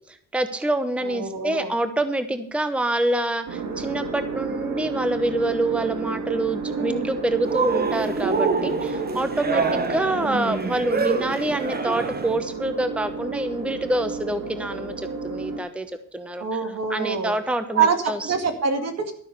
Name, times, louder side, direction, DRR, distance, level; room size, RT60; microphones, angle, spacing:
voice 1, 0.1-15.9 16.1-18.3, right 1 dB, 5° right, 10 dB, 0.9 m, -26 dB
voice 2, 1.0-1.7 6.7-7.1 9.5-9.9 16.4-17.3 17.7-19.1, right 5 dB, 60° right, 6 dB, 2.2 m, -25 dB
sound 1, 3.5-15.6, right 4 dB, 75° right, 2.5 m, -31 dB
Cheering, 7.4-12.4, right 4 dB, 30° right, 1.2 m, -26 dB
12.5 x 6.2 x 8.0 m, 0.65 s
cardioid pair, 90°, 30 cm